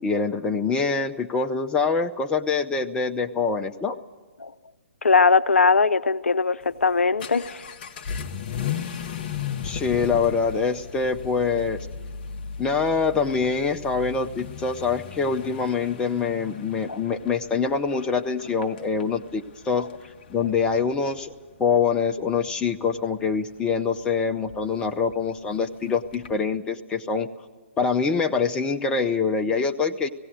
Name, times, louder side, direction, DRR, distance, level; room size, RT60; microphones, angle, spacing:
voice 1, 0.0-4.0 9.6-11.8 12.6-19.9 20.3-21.3 21.6-27.3 27.8-30.1, left 5 dB, 10° left, 0.5 m, -25 dB
voice 2, 5.0-7.6 16.9-17.0, left 4 dB, 70° left, 0.5 m, -20 dB
Vehicle / Accelerating revving vroom, 6.6-26.4, left 7 dB, 35° left, 0.8 m, -37 dB
17.0 x 17.0 x 9.3 m
figure-of-eight pair, 130°, 7 cm